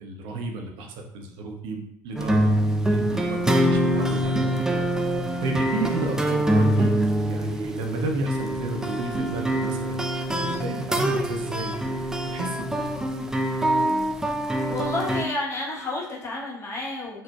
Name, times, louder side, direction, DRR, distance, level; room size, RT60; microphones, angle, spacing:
voice 1, 0.0-2.5 2.9-4.9 5.4-6.9 7.2-10.0 10.4-12.0 12.3-12.9, right 2 dB, 55° right, 3 dB, 0.5 m, -32 dB
sound 1, 2.2-15.2, right 1 dB, 5° right, 0.3 m, -24 dB
voice 2, 14.7-17.2, left 2 dB, 25° left, -4 dB, 1.0 m, -30 dB
4.0 x 2.1 x 2.2 m, 0.75 s
figure-of-eight pair, 60°, 10 cm